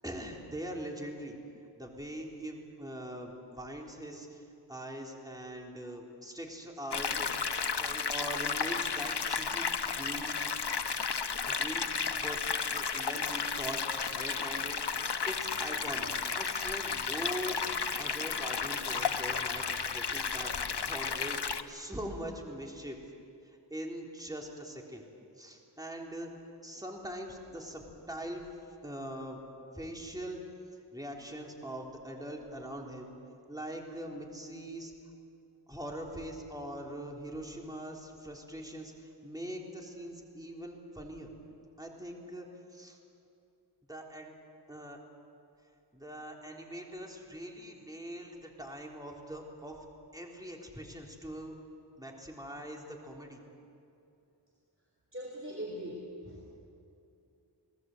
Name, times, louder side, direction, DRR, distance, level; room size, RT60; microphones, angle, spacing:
voice 1, 0.0-1.4 1.8-4.4 4.7-10.4 11.4-12.4 12.7-14.8 15.2-17.6 18.0-20.5 20.8-23.0 23.5-25.0 25.4-26.3 26.6-28.5 28.8-29.4 29.7-30.4 30.9-33.1 33.5-34.9 35.7-41.3 41.8-42.5 42.7-43.0 43.9-44.3 44.7-45.0 45.9-49.8 50.1-51.5 52.0-53.4, right 1 dB, 10° right, 0 dB, 3.6 m, -42 dB
sound 1, 6.9-21.6, left 5 dB, 65° left, 1.0 m, -33 dB
voice 2, 55.1-56.5, equal, 30° right, -2 dB, 4.0 m, -41 dB
28.5 x 18.5 x 7.9 m, 2.6 s
wide cardioid pair, 65°, 44 cm